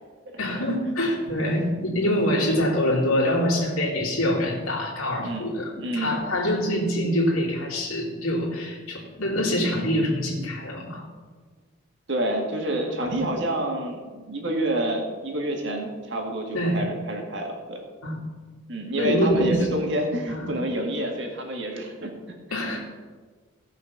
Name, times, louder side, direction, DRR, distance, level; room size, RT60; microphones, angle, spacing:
voice 1, 0.4-11.0 16.5-16.8 18.0-18.2 19.0-19.7 20.3-20.6 22.5-22.8, equal, 85° left, -4 dB, 2.6 m, -25 dB
voice 2, 2.0-2.3 5.2-5.4 5.8-6.2 12.1-17.8 18.7-22.1 22.5-22.6, right 1 dB, 55° right, 1 dB, 2.1 m, -28 dB
16.5 x 5.6 x 6.0 m, 1.4 s
head